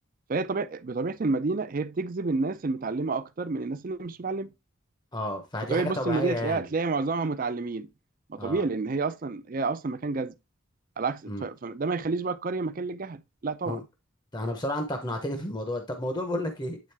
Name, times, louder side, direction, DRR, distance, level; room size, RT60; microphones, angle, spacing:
voice 1, 0.3-4.5 5.7-7.9 8.3-10.3 11.0-13.8, right 3 dB, 40° right, 0.4 m, -29 dB
voice 2, 5.1-6.7 8.4-8.6 11.3-11.5 13.6-13.8 14.3-16.8, left 1 dB, 20° left, 0.7 m, -31 dB
8.8 x 3.7 x 3.3 m
head